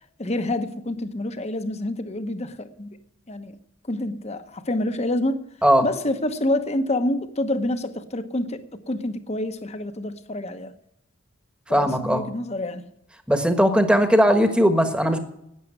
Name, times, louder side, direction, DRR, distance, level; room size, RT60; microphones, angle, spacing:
voice 1, 0.2-3.0 3.3-3.6 3.8-5.4 5.8-10.7 11.7-12.9, left 1 dB, 30° left, 1.0 m, -27 dB
voice 2, 11.7-12.2 13.3-15.2, equal, 5° right, 1.3 m, -18 dB
12.0 x 9.2 x 8.9 m
head